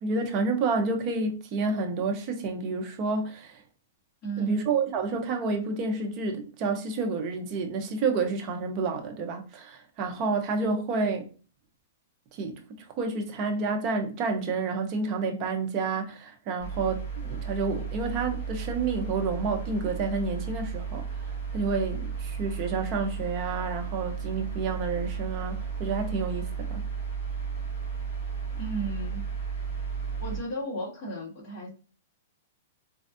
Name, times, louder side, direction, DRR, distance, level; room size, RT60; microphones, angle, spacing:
voice 1, 0.0-3.6 4.4-11.3 12.3-26.9, right 4 dB, 25° right, 0.6 m, -29 dB
voice 2, 4.2-4.6 28.6-29.2 30.2-31.7, right 2 dB, 25° left, 1.4 m, -34 dB
sound 1, 16.6-30.4, right 6 dB, 40° left, 1.3 m, -34 dB
4.2 x 2.3 x 2.6 m
hypercardioid pair, 175°, 0 cm